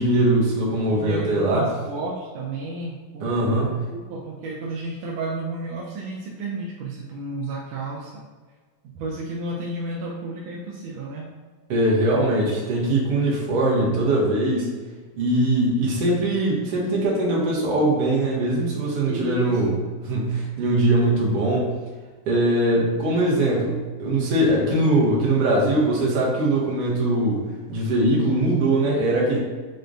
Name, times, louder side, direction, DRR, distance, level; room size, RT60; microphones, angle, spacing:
voice 1, 0.0-1.7 3.2-3.7 11.7-14.7 15.2-19.7 20.0-21.7 22.3-27.4 27.7-29.4, right 1 dB, 65° right, -4 dB, 1.6 m, -21 dB
voice 2, 1.0-8.3 8.9-11.3 19.0-19.6, right 2 dB, 85° right, -3 dB, 1.5 m, -32 dB
6.4 x 2.2 x 2.5 m, 1.4 s
omnidirectional pair, 3.5 m